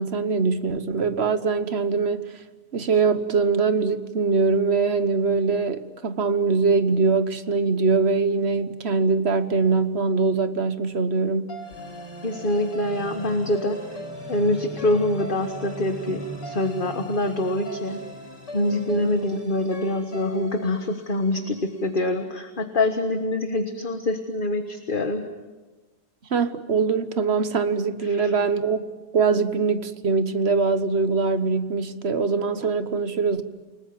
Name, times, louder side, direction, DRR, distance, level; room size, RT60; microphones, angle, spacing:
voice 1, 0.0-2.3 2.7-11.5 18.9-19.1 26.3-28.9 29.1-33.4, right 4 dB, 40° right, 11 dB, 1.2 m, -22 dB
sound 1, 11.5-21.8, equal, 75° left, 5.1 m, -38 dB
voice 2, 12.2-13.8 14.3-18.0 18.5-25.2 28.1-28.3, left 1 dB, 30° left, 6 dB, 1.4 m, -25 dB
29.0 x 19.5 x 8.8 m, 1.2 s
omnidirectional pair, 1.9 m